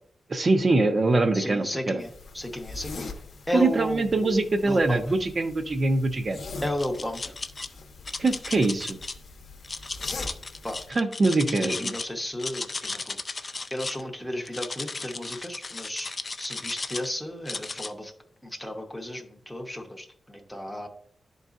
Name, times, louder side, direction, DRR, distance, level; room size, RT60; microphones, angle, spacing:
voice 1, 0.3-2.0 3.5-6.4 8.2-9.0 10.9-11.7, right 2 dB, 35° right, 8 dB, 0.6 m, -23 dB
voice 2, 1.3-2.1 2.3-3.1 3.5-5.0 6.6-7.4 10.6-10.8 11.5-13.2 13.7-18.1 18.4-20.9, left 1 dB, ahead, 1 dB, 0.7 m, -33 dB
sound 1, 2.0-10.9, left 3 dB, 60° left, 0.7 m, -42 dB
sound 2, 6.6-7.7 8.1-9.1 9.6-12.1 12.3-14.0 14.5-17.1 17.5-17.9, left 3 dB, 30° left, 0.3 m, -35 dB
11.0 x 3.9 x 2.4 m, 0.63 s
wide cardioid pair, 160°, 0 cm